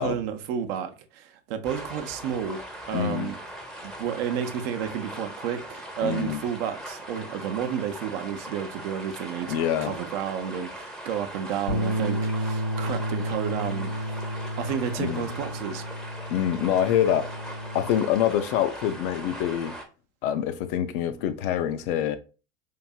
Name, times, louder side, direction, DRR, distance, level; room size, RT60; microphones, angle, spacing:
voice 1, 0.0-3.4 3.8-14.1 14.6-15.8, right 8 dB, 55° right, 0.6 m, -31 dB
sound 1, 1.6-19.9, right 1 dB, ahead, 0.6 m, -40 dB
voice 2, 2.9-3.3 6.0-6.4 9.5-9.9 15.0-15.3 16.3-17.4 17.7-19.8 20.2-22.2, left 10 dB, 50° left, 0.5 m, -25 dB
Bass guitar, 11.7-17.9, equal, 85° left, 1.3 m, -31 dB
4.6 x 2.6 x 2.2 m
hypercardioid pair, 85°, 37 cm